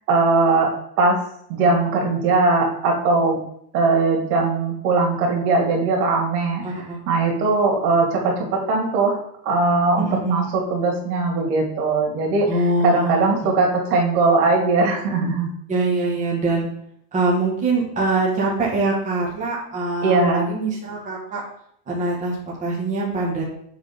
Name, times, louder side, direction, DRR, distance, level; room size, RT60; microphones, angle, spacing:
voice 1, 0.1-0.7 1.0-1.2 1.5-3.4 3.7-6.6 7.1-12.5 12.8-15.5 20.0-20.5, right 3 dB, 85° right, 0 dB, 2.5 m, -20 dB
voice 2, 6.6-7.0 10.0-10.4 12.5-13.3 15.7-16.7 17.1-21.4 21.9-23.4, right 3 dB, 15° right, -5 dB, 1.5 m, -23 dB
7.4 x 3.8 x 5.2 m, 0.68 s
cardioid pair, 180°, 45 cm